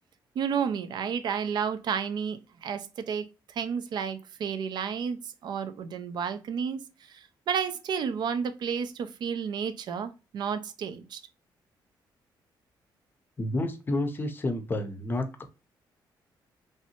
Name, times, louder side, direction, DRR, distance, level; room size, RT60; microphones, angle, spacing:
voice 1, 0.4-11.2, right 7 dB, 60° right, 0.4 m, -32 dB
voice 2, 13.4-15.4, left 1 dB, 25° left, 0.6 m, -30 dB
3.1 x 2.7 x 2.7 m
cardioid pair, 125°, 8 cm